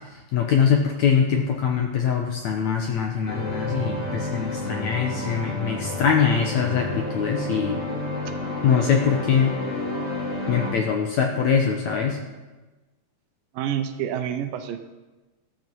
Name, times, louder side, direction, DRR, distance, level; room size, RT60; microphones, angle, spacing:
voice 1, 0.3-7.8 8.6-9.5 10.5-12.2, left 7 dB, 70° left, 2 dB, 1.8 m, -23 dB
sound 1, 3.3-10.7, left 1 dB, 20° left, 2.8 m, -30 dB
voice 2, 13.5-14.8, right 9 dB, 75° right, 8 dB, 2.3 m, -28 dB
13.5 x 13.0 x 4.6 m, 1.2 s
omnidirectional pair, 4.3 m